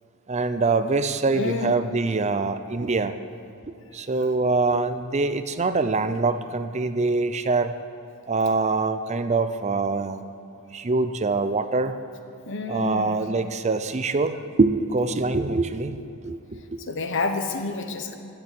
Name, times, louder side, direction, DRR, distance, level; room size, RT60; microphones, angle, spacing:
voice 1, 0.3-3.1 3.7-7.8 8.3-10.2 10.7-12.0 12.7-16.8, right 3 dB, 30° right, 11 dB, 0.5 m, -24 dB
voice 2, 1.3-1.8 12.5-13.2 16.9-18.2, left 3 dB, 55° left, 7 dB, 1.1 m, -29 dB
15.5 x 6.9 x 9.6 m, 2.8 s
head